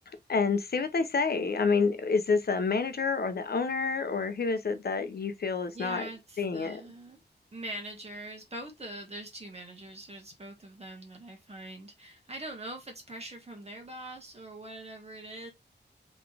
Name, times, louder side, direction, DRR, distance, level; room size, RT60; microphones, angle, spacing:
voice 1, 0.3-6.1 6.4-6.8, left 4 dB, 60° left, 0.8 m, -28 dB
voice 2, 5.7-7.2 7.5-15.5, right 1 dB, 35° right, 1.8 m, -43 dB
4.1 x 3.6 x 3.3 m
wide cardioid pair, 120°, 18 cm